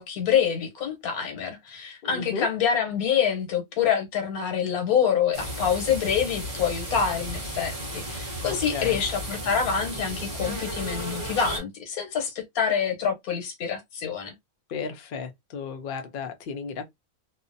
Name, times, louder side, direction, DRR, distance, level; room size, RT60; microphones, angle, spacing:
voice 1, 0.0-14.3, left 7 dB, 85° left, 1.3 m, -26 dB
voice 2, 2.0-2.5 8.4-9.0 14.7-16.8, left 5 dB, 65° left, 0.5 m, -34 dB
sound 1, 5.3-11.6, right 1 dB, 30° right, 0.7 m, -34 dB
2.7 x 2.0 x 2.5 m
omnidirectional pair, 1.5 m